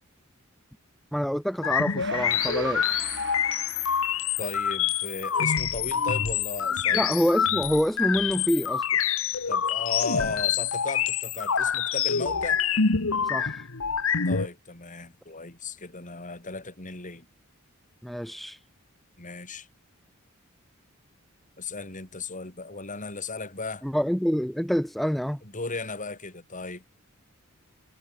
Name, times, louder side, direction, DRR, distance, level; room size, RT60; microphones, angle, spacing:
voice 1, 1.1-3.1 6.9-8.8 13.2-13.7 18.0-18.6 23.8-25.4, equal, ahead, 0.4 m, -27 dB
sound 1, 1.6-14.5, left 7 dB, 70° left, 1.5 m, -26 dB
Gong, 2.0-8.9, right 7 dB, 60° right, 2.6 m, -43 dB
voice 2, 4.4-7.1 9.5-12.6 14.3-17.3 19.2-19.7 21.6-23.9 25.4-26.9, left 3 dB, 35° left, 5.3 m, -36 dB
head